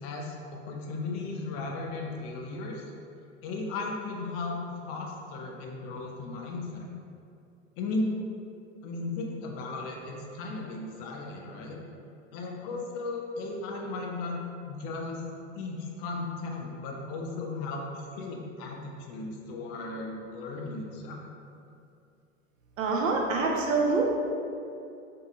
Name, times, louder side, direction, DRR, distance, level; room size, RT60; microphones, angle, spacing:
voice 1, 0.0-2.9 3.4-6.9 7.8-8.1 8.8-11.8 12.3-14.4 14.6-15.2 15.5-21.2, left 3 dB, 40° left, 0 dB, 0.4 m, -36 dB
voice 2, 22.8-24.1, right 3 dB, 85° right, 0 dB, 0.5 m, -25 dB
2.6 x 2.3 x 2.7 m, 2.5 s
hypercardioid pair, 80°, 38 cm